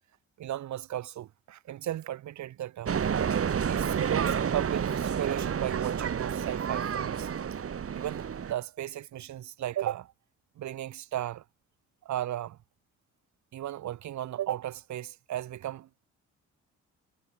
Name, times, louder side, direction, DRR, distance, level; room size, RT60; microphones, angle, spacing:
voice 1, 0.4-2.9 3.7-7.3 7.9-10.1 10.6-11.4 12.0-12.6 13.5-15.9, right 12 dB, 70° right, 1.4 m, -35 dB
sound 1, 2.9-8.5, right 7 dB, 50° right, 3.3 m, -30 dB
cardioid pair, 90°, 30 cm